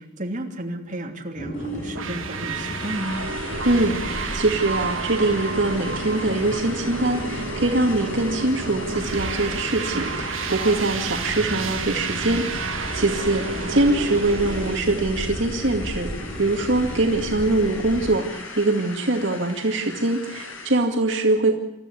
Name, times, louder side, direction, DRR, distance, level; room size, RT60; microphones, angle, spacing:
voice 1, 0.0-3.2 13.7-13.9, right 1 dB, 40° right, 1 dB, 3.0 m, -33 dB
sound 1, 1.4-18.1, equal, 55° left, 7.9 m, -34 dB
sound 2, 1.5-20.9, left 3 dB, 80° left, 6.2 m, -39 dB
sound 3, 1.9-14.8, right 5 dB, 85° right, 1.3 m, -31 dB
voice 2, 3.6-21.6, right 2 dB, 65° right, 2 dB, 2.2 m, -23 dB
28.0 x 14.0 x 8.5 m, 1.0 s
head